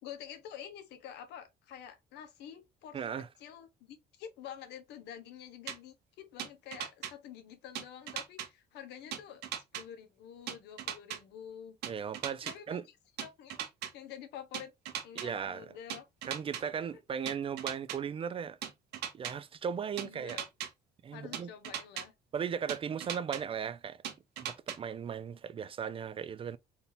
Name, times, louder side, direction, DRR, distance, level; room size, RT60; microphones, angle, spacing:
voice 1, 0.0-3.0 3.4-11.8 12.4-12.9 13.2-14.7 15.0-16.1 16.6-17.0 20.0-20.5 21.1-22.1, left 9 dB, 85° left, 1.2 m, -48 dB
voice 2, 2.9-3.3 11.9-12.8 15.2-15.7 16.2-18.6 19.1-20.4 21.0-21.5 22.3-24.0 24.4-26.6, right 7 dB, 35° right, 0.4 m, -37 dB
sound 1, 5.7-5.8 6.4-7.1 7.7-8.5 9.1-9.8 10.5-11.2 11.8-12.5 13.2-13.9 14.5-15.3 15.9-16.6 17.3-18.0 18.6-19.3 20.0-20.7 21.3-22.0 22.7-23.4 24.0-24.8, right 9 dB, 75° right, 1.1 m, -38 dB
4.3 x 2.7 x 3.5 m
cardioid pair, 110°, 17 cm